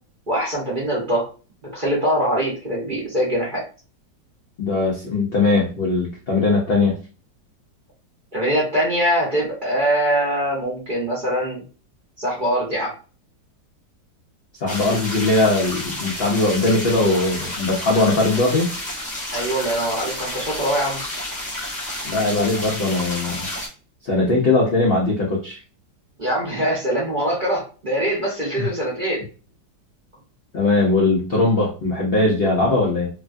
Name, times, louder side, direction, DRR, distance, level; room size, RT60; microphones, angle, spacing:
voice 1, 0.3-1.3 1.7-3.6 8.3-11.6 12.2-12.9 19.3-21.0 26.2-29.2, right 1 dB, 40° right, -5 dB, 0.8 m, -23 dB
voice 2, 4.6-7.0 14.6-18.7 22.0-23.5 24.0-25.6 28.6-28.7 30.5-33.1, left 2 dB, 65° left, -3 dB, 0.5 m, -20 dB
sound 1, 14.7-23.7, left 1 dB, 10° left, 0.4 m, -30 dB
3.0 x 2.3 x 2.5 m, 0.35 s
omnidirectional pair, 1.9 m